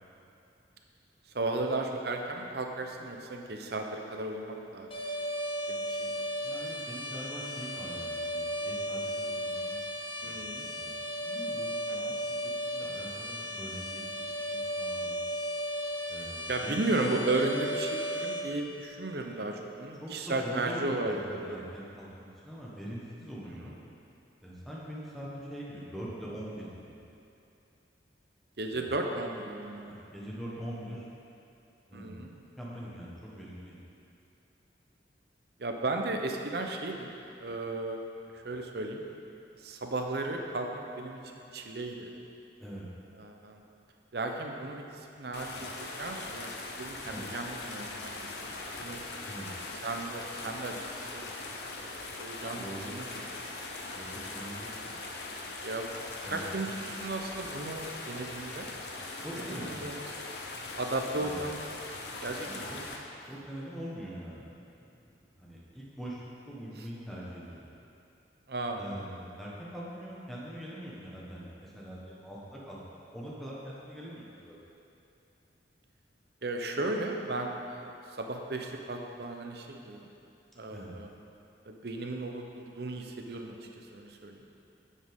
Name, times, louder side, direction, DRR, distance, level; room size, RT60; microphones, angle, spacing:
voice 1, 1.3-4.9 5.7-6.3 10.2-10.7 11.9-12.2 16.5-21.7 23.4-23.6 28.6-29.8 31.9-32.3 35.6-37.1 37.4-38.0 38.3-39.0 39.5-42.1 43.2-43.6 44.1-49.0 49.8-51.3 51.7-53.3 55.6-55.9 56.2-58.7 59.6-60.0 60.8-61.6 62.2-62.7 68.5-68.8 76.4-80.1 80.6-81.1 81.6-84.5, right 2 dB, 60° right, 3 dB, 0.7 m, -35 dB
sound 1, 4.9-18.4, equal, 30° left, 0.9 m, -35 dB
voice 2, 6.4-9.8 10.2-11.7 12.0-12.3 12.6-15.2 16.1-16.9 19.9-23.7 24.4-27.0 28.7-28.8 29.8-31.0 31.9-32.2 32.6-33.8 42.6-42.9 47.1-47.3 49.2-49.5 52.5-52.9 53.8-55.0 56.2-57.0 59.2-59.8 61.2-61.4 62.4-62.6 63.3-65.0 65.4-66.2 66.5-67.7 68.8-74.6 80.7-80.9, equal, ahead, -7 dB, 1.4 m, -43 dB
sound 2, 45.3-63.0, left 3 dB, 65° left, 0.8 m, -41 dB
10.0 x 7.4 x 3.7 m, 2.7 s
head